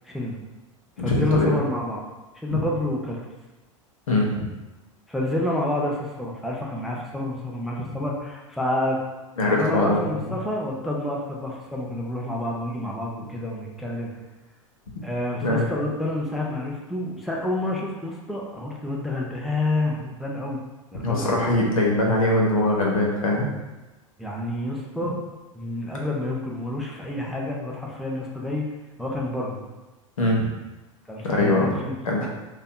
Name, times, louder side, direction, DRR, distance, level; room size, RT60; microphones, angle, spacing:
voice 1, 0.0-0.4 1.0-2.0 2.4-3.2 5.1-9.0 9.4-14.1 15.0-20.6 20.9-21.5 24.2-25.2 25.6-28.7 29.0-29.6 31.1-32.3, left 1 dB, ahead, -3 dB, 0.3 m, -28 dB
voice 2, 1.0-1.5 2.5-2.6 4.1-4.5 9.4-10.0 15.4-15.7 21.0-23.5 30.2-30.5 31.2-31.8 32.0-32.3, left 2 dB, 80° left, -2 dB, 0.6 m, -22 dB
2.6 x 2.3 x 2.2 m, 1.1 s
figure-of-eight pair, 90°, 17 cm